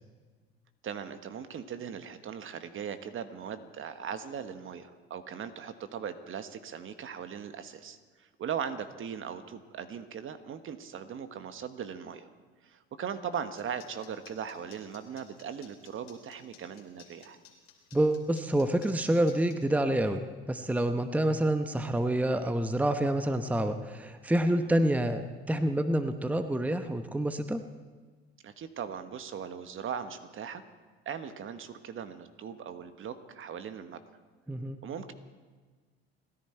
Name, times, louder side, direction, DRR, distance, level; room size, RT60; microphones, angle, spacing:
voice 1, 0.8-12.3 12.6-17.4 28.4-30.6 31.0-34.0 34.8-35.1, right 7 dB, 45° right, 10 dB, 1.3 m, -39 dB
sound 1, 13.3-19.6, left 12 dB, 85° left, 2.9 m, -55 dB
voice 2, 17.9-27.6 34.5-34.8, right 1 dB, 5° right, 9 dB, 0.9 m, -28 dB
30.0 x 11.0 x 4.5 m, 1.4 s
hypercardioid pair, 75°, 29 cm